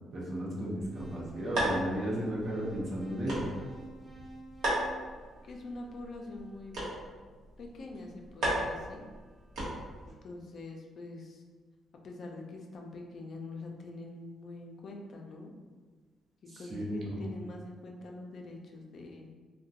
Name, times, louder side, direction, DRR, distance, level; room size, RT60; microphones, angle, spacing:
voice 1, 0.1-3.5 16.5-17.3, equal, 50° right, -5 dB, 0.8 m, -34 dB
sound 1, 0.8-10.1, right 1 dB, 80° right, 0.9 m, -37 dB
sound 2, 0.9-6.1, right 2 dB, 15° right, 0.7 m, -50 dB
voice 2, 5.4-6.7 7.6-9.0 10.2-11.4 12.0-15.5 16.6-19.3, left 2 dB, 55° left, 1 dB, 0.4 m, -44 dB
2.3 x 2.1 x 2.7 m, 1.4 s
cardioid pair, 90°, 0 cm